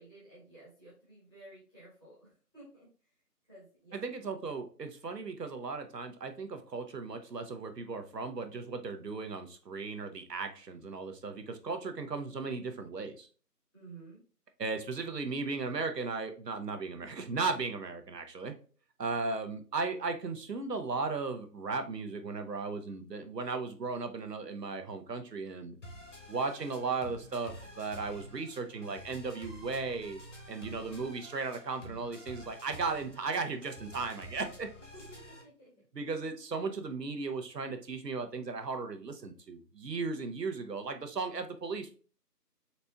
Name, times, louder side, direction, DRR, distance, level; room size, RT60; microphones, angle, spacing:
voice 1, 0.0-2.9 3.5-4.1 13.7-14.2 34.9-35.7, right 2 dB, 15° right, -11 dB, 1.2 m, -53 dB
voice 2, 3.9-13.3 14.6-18.5 19.0-25.8 26.3-30.2 30.5-34.7 35.9-41.9, right 4 dB, 80° right, 7 dB, 0.9 m, -36 dB
sound 1, 25.8-35.4, equal, 45° left, 1.1 m, -49 dB
4.2 x 4.0 x 2.2 m, 0.39 s
figure-of-eight pair, 170°, 48 cm